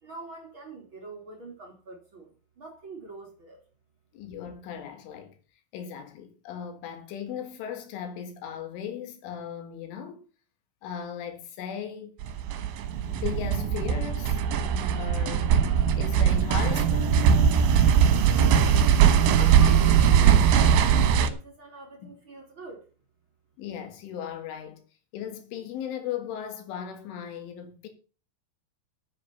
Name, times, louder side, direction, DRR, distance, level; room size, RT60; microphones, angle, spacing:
voice 1, 0.0-3.6 18.1-18.8 19.3-22.8, right 3 dB, 30° right, 3.0 m, -44 dB
voice 2, 4.1-5.4 5.7-10.3 10.8-12.1 13.1-14.4 15.0-15.6 16.0-17.3 17.8-18.1 22.0-22.1 23.6-24.8 25.1-27.9, left 8 dB, 80° left, 4.4 m, -37 dB
caveman stomp, 12.2-21.3, right 8 dB, 75° right, 3.5 m, -20 dB
9.4 x 9.3 x 6.9 m
omnidirectional pair, 5.5 m